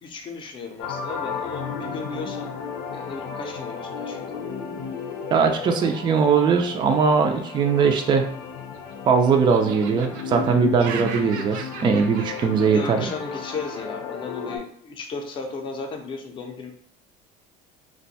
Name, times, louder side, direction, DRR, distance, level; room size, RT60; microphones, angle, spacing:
voice 1, 0.0-2.5 2.9-4.5 12.7-16.7, left 4 dB, 30° left, 3 dB, 0.6 m, -35 dB
sound 1, 0.8-14.6, left 6 dB, 85° left, 0.7 m, -34 dB
voice 2, 5.3-8.3 9.1-13.1, right 5 dB, 25° right, 4 dB, 0.4 m, -20 dB
Laughter, 8.3-9.1 9.5-13.9, right 6 dB, 80° right, 0.5 m, -39 dB
2.5 x 2.2 x 4.0 m, 0.63 s
cardioid pair, 145°, 18 cm